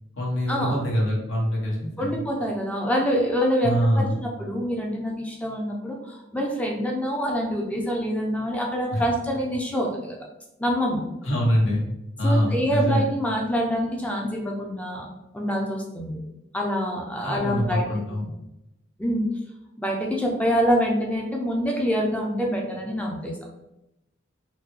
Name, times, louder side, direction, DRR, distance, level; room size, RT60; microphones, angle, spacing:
voice 1, 0.1-2.2 3.6-4.2 8.9-9.0 11.2-11.9 12.2-13.0 17.2-18.4, equal, 70° left, -3 dB, 1.1 m, -24 dB
voice 2, 2.0-10.2 10.6-11.0 12.2-15.1 15.3-16.2 16.5-17.9 19.0-19.2 19.8-23.3, equal, 5° left, -1 dB, 0.5 m, -26 dB
3.7 x 2.2 x 3.1 m, 0.89 s
head